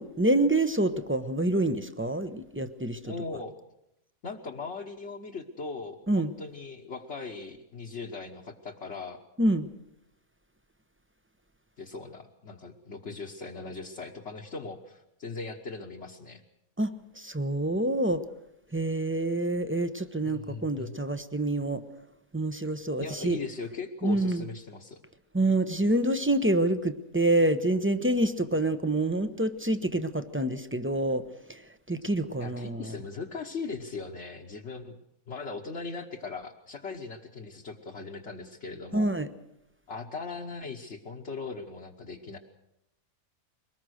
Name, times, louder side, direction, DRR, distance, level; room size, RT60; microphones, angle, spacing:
voice 1, 0.0-3.1 6.1-6.3 9.4-9.7 16.8-18.2 18.7-21.8 22.3-23.4 24.0-24.4 25.3-31.2 31.5-31.6 31.9-32.9 38.9-39.3, right 1 dB, 10° right, 10 dB, 0.7 m, -27 dB
voice 2, 3.1-3.6 4.2-9.2 11.8-16.4 20.2-20.9 23.0-25.0 25.4-25.5 32.4-34.9 35.3-39.1 39.9-42.4, left 4 dB, 55° left, -2 dB, 1.5 m, -39 dB
23.0 x 19.5 x 6.4 m, 0.83 s
omnidirectional pair, 1.5 m